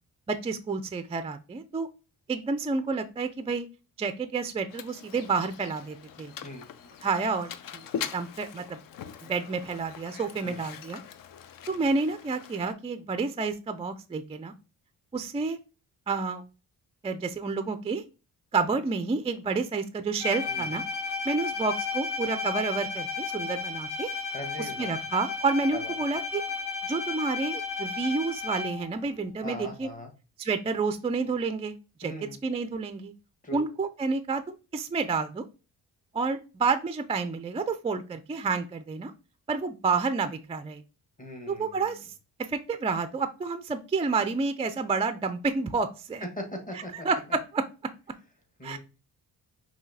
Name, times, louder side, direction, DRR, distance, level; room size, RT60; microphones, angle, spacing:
voice 1, 0.3-1.9 2.3-3.7 4.0-6.3 7.0-7.9 8.1-8.8 9.2-11.0 11.7-14.5 15.1-15.6 16.1-16.4 17.0-18.0 18.5-20.8 21.3-24.1 24.6-26.4 26.9-29.9 30.4-31.7 32.0-32.1 32.4-33.1 33.5-35.4 36.1-39.1 39.5-40.8 41.5-42.1 42.5-46.2 46.7-47.6 48.6-48.8, right 4 dB, 15° right, 10 dB, 0.3 m, -29 dB
Mechanisms, 4.7-12.7, left 8 dB, 55° left, 0.5 m, -42 dB
voice 2, 6.4-7.0 10.4-10.6 20.4-20.7 24.3-25.0 25.7-25.9 29.4-30.1 32.0-32.4 33.4-33.7 41.2-42.0 46.4-47.4 48.6-48.8, left 1 dB, 20° left, 3 dB, 1.3 m, -40 dB
Bowed string instrument, 20.2-29.0, left 4 dB, 90° left, 1.4 m, -33 dB
5.7 x 2.8 x 2.7 m, 0.32 s
cardioid pair, 90°, 39 cm